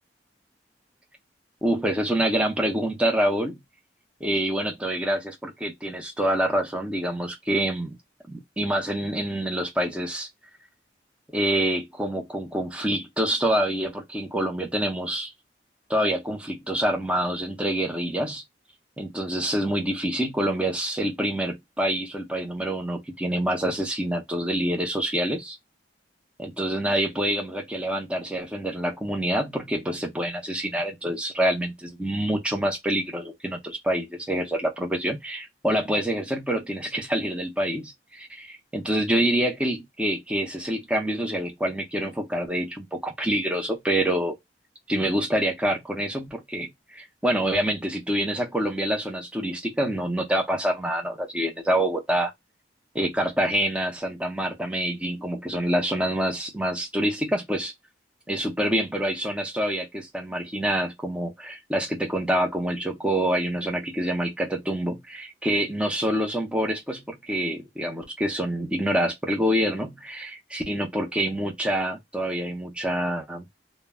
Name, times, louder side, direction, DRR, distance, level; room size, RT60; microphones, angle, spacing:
voice 1, 1.6-3.6 4.2-8.0 8.3-10.3 11.3-15.3 15.9-18.4 19.0-25.6 26.4-44.4 44.9-52.3 52.9-57.7 58.3-73.4, right 1 dB, 5° right, 0.5 m, -26 dB
2.2 x 2.0 x 3.3 m
head